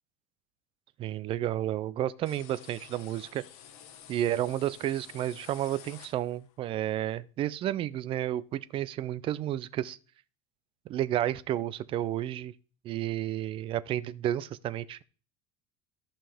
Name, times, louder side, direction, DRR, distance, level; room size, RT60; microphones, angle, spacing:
voice 1, 1.0-3.4 4.1-10.0 10.9-12.5 12.8-15.0, right 12 dB, 30° right, 0.4 m, -31 dB
sound 1, 2.3-6.6, left 9 dB, 75° left, 1.4 m, -51 dB
14.0 x 5.6 x 3.4 m
cardioid pair, 160°, 19 cm